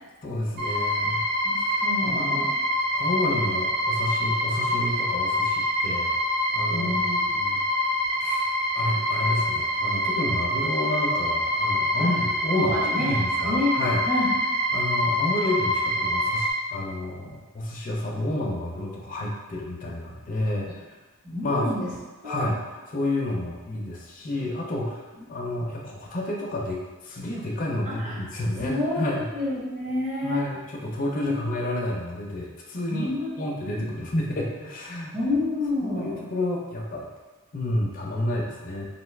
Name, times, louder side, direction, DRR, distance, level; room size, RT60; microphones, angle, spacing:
voice 1, 0.2-1.3 1.6-2.5 2.9-6.1 6.5-7.0 7.3-7.6 8.2-8.5 8.7-14.0 14.7-21.0 21.4-21.7 22.2-22.6 22.9-29.3 30.2-33.1 33.4-35.1 35.8-37.1 37.5-38.9, left 1 dB, 40° left, -2 dB, 0.4 m, -30 dB
sound 1, 0.6-16.5, equal, 50° right, 0.7 m, -25 dB
voice 2, 1.4-2.5 6.7-7.6 12.5-13.1 13.5-13.7 14.1-14.3 21.2-21.9 22.2-22.5 27.9-28.2 28.6-30.4 31.2-31.5 32.9-33.4 33.7-33.8 35.1-36.2, left 2 dB, 35° right, -9 dB, 1.0 m, -29 dB
2.6 x 2.3 x 3.1 m, 1.2 s
head